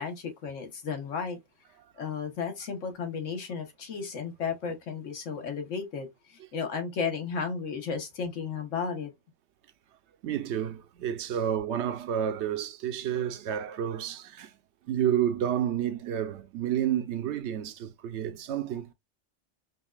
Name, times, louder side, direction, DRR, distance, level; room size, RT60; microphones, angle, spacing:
voice 1, 0.0-1.4 1.9-9.1, left 5 dB, 80° left, 1.4 m, -34 dB
voice 2, 10.2-14.5 14.9-18.9, right 10 dB, 70° right, 0.8 m, -30 dB
5.2 x 2.4 x 2.3 m
omnidirectional pair, 1.3 m